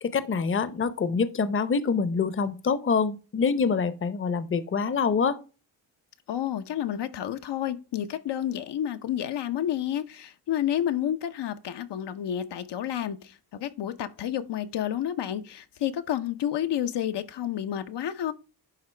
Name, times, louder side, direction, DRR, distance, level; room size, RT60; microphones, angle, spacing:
voice 1, 0.0-5.4, left 5 dB, 30° left, 0.7 m, -25 dB
voice 2, 6.3-18.3, left 10 dB, 75° left, 0.8 m, -30 dB
11.0 x 3.8 x 3.3 m
cardioid pair, 80°, 42 cm